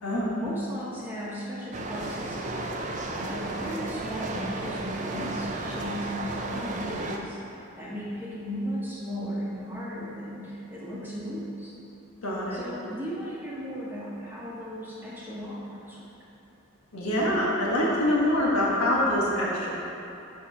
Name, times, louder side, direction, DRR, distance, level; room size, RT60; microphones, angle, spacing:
voice 1, 0.4-2.6 3.1-11.7 12.5-16.1, equal, 10° right, -7 dB, 1.0 m, -36 dB
sound 1, 1.7-7.2, right 2 dB, 35° right, 0.4 m, -33 dB
voice 2, 12.2-12.6 16.9-19.8, left 1 dB, 85° left, -6 dB, 1.4 m, -25 dB
6.8 x 3.1 x 5.3 m, 2.9 s
head